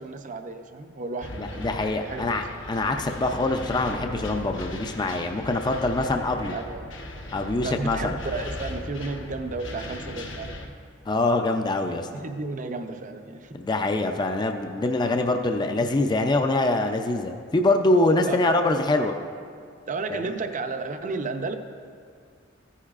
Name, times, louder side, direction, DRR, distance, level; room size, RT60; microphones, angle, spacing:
voice 1, 0.0-2.2 6.5-6.9 7.6-10.7 12.1-13.6 18.3-18.4 19.9-21.6, right 3 dB, 40° right, 7 dB, 0.6 m, -33 dB
Huge Explosion, 1.2-10.7, left 1 dB, 80° left, 1.1 m, -38 dB
voice 2, 1.4-6.6 7.3-8.2 11.1-12.1 13.5-19.1 20.1-20.2, left 2 dB, 25° left, 5 dB, 0.4 m, -24 dB
14.5 x 9.9 x 2.4 m, 2.2 s
head